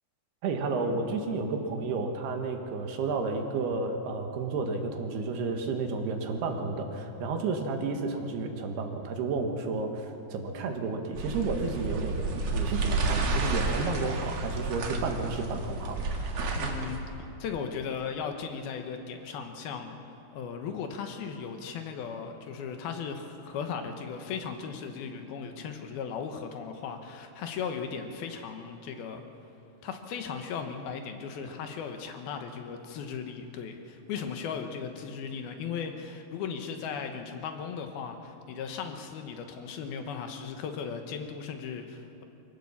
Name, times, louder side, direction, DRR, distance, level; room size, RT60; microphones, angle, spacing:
voice 1, 0.4-16.0, right 3 dB, 80° right, 4 dB, 3.6 m, -31 dB
sound 1, 11.1-17.0, right 3 dB, 50° right, 2.4 m, -31 dB
voice 2, 16.6-17.0 17.4-20.0 20.3-29.2 29.8-42.2, left 6 dB, 75° left, 5 dB, 3.0 m, -37 dB
24.0 x 16.5 x 7.3 m, 2.8 s
omnidirectional pair, 4.6 m